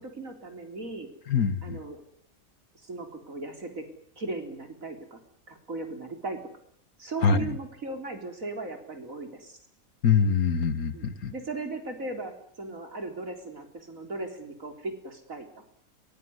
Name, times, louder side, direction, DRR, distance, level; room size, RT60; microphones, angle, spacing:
voice 1, 0.0-1.1 1.6-2.0 2.7-3.9 4.2-5.2 5.5-6.4 7.0-9.6 10.9-15.6, right 2 dB, 65° right, 5 dB, 4.3 m, -37 dB
voice 2, 1.3-1.8 7.2-7.5 10.0-11.3, left 6 dB, 85° left, 13 dB, 2.0 m, -24 dB
22.5 x 20.0 x 9.7 m, 0.63 s
omnidirectional pair, 1.5 m